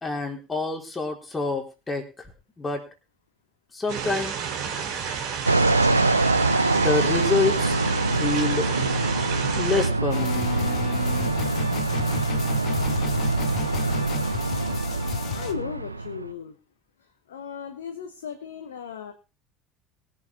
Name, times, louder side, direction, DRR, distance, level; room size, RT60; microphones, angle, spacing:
voice 1, 0.0-2.3 2.6-2.8 3.7-4.3 6.7-7.8 8.1-8.7 9.6-10.5, left 3 dB, 20° left, 2 dB, 4.1 m, -27 dB
sound 1, 3.9-9.9, right 7 dB, 55° right, 4.6 m, -31 dB
Fixed-wing aircraft airplane, 5.5-16.3, right 2 dB, 90° right, 0.8 m, -24 dB
sound 2, 10.1-15.5, left 7 dB, 45° left, 1.9 m, -33 dB
voice 2, 15.3-16.5 17.3-19.1, left 7 dB, 75° left, 6 dB, 1.3 m, -36 dB
22.0 x 7.7 x 4.1 m, 0.32 s
figure-of-eight pair, 65°, 0 cm